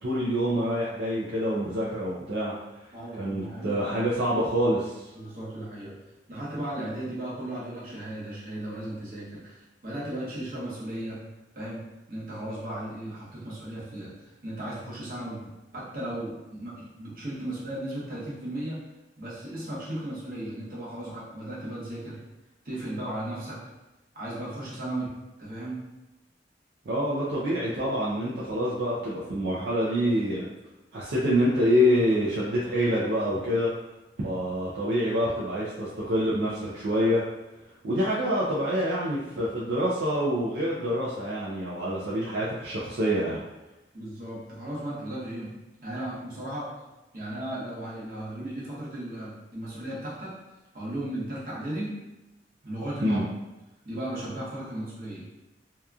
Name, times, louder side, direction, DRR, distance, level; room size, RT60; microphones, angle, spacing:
voice 1, 0.0-2.5 3.2-5.0 26.9-30.4 30.9-33.7 34.2-37.2 37.8-43.4 53.0-53.2, equal, 70° right, -7 dB, 0.5 m, -26 dB
voice 2, 2.9-4.1 5.1-6.0 6.3-11.2 11.5-18.8 19.2-22.2 22.6-23.6 24.1-25.1 25.4-25.8 43.9-45.6 45.8-46.8 47.1-50.4 50.7-52.0 52.6-53.2 53.8-55.3, right 1 dB, 50° right, -7 dB, 0.9 m, -36 dB
2.8 x 2.3 x 2.3 m, 1.0 s
head